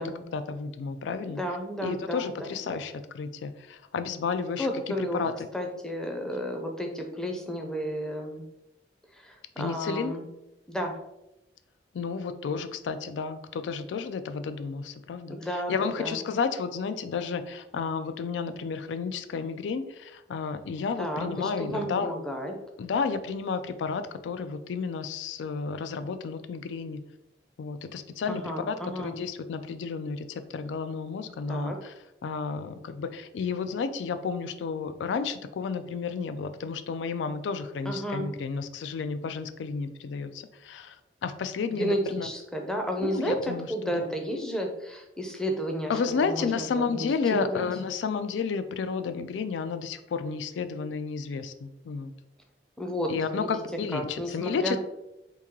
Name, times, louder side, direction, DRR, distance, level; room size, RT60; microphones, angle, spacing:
voice 1, 0.3-1.4 1.8-5.5 9.6-10.1 11.9-22.1 22.8-27.0 27.6-31.9 32.2-41.0 41.2-42.3 43.0-44.1 45.9-52.1 53.1-54.8, left 5 dB, 90° left, 10 dB, 0.3 m, -32 dB
voice 2, 1.3-2.8 4.6-5.2 5.5-8.4 9.1-10.2 10.7-11.0 15.3-16.2 21.0-22.5 28.3-29.2 31.5-31.8 37.9-38.3 41.7-45.9 46.3-47.1 47.4-47.6 52.8-53.6 53.9-54.8, equal, 5° left, 2 dB, 0.5 m, -32 dB
3.0 x 2.7 x 3.6 m, 0.89 s
head